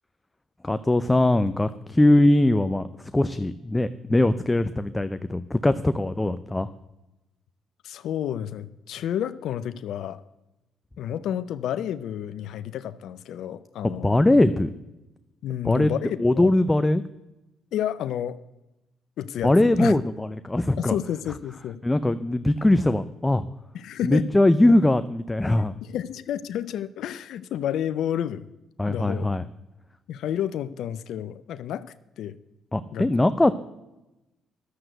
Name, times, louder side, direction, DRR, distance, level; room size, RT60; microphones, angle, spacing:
voice 1, 0.6-6.7 13.8-14.7 15.6-15.9 16.2-17.0 19.4-20.9 21.8-23.5 24.0-25.8 28.8-29.5 32.7-33.6, left 1 dB, 15° left, 11 dB, 0.6 m, -21 dB
voice 2, 7.8-10.2 11.0-14.1 15.4-16.5 17.7-18.4 19.2-19.9 20.8-21.8 23.7-24.2 25.8-28.4 28.9-29.3 30.1-31.9 32.2-32.4 32.9-33.1, left 10 dB, 75° left, 14 dB, 0.5 m, -30 dB
11.5 x 7.7 x 7.9 m, 0.95 s
supercardioid pair, 65°, 0 cm